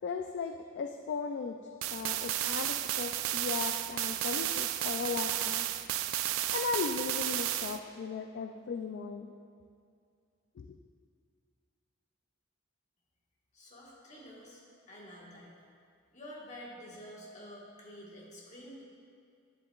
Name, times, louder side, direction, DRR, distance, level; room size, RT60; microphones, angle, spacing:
voice 1, 0.0-1.6 1.9-5.7 6.5-9.3 10.6-10.8, left 5 dB, 55° left, 5 dB, 0.3 m, -37 dB
sound 1, 1.8-7.8, right 12 dB, 85° right, 0.3 m, -33 dB
voice 2, 13.5-14.6 14.9-15.5 16.1-18.8, equal, 35° left, -4 dB, 1.5 m, -49 dB
10.0 x 7.7 x 2.3 m, 2.4 s
head